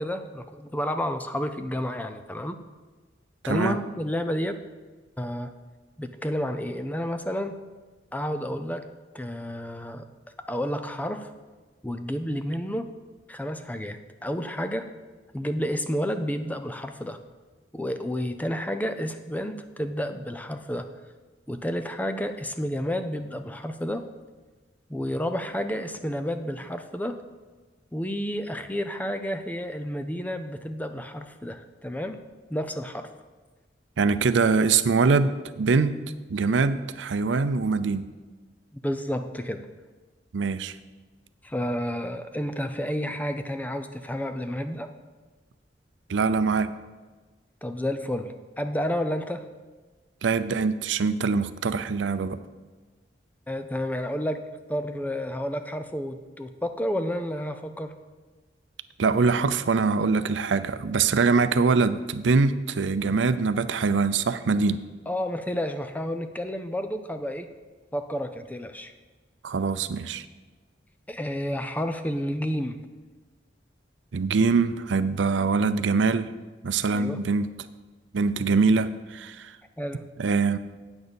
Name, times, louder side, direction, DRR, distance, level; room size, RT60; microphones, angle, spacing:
voice 1, 0.0-2.6 3.5-4.6 5.2-5.5 6.0-7.6 8.1-8.9 9.1-10.0 10.5-11.3 11.8-12.9 13.3-14.9 15.3-17.2 17.7-20.9 21.5-24.0 24.9-27.2 27.9-32.2 32.5-33.1 38.8-39.6 41.4-44.9 47.6-49.4 53.5-57.9 65.1-67.5 67.9-68.9 71.1-72.8 76.9-77.2 79.8-80.1, equal, 10° left, 8 dB, 0.5 m, -30 dB
voice 2, 3.4-3.8 34.0-36.0 36.3-38.1 40.3-40.8 46.1-46.7 50.2-52.4 59.0-64.8 69.4-70.3 74.1-76.3 76.6-77.5 78.1-79.5 80.2-80.6, right 4 dB, 90° right, 13 dB, 0.5 m, -23 dB
8.8 x 6.5 x 6.9 m, 1.3 s
head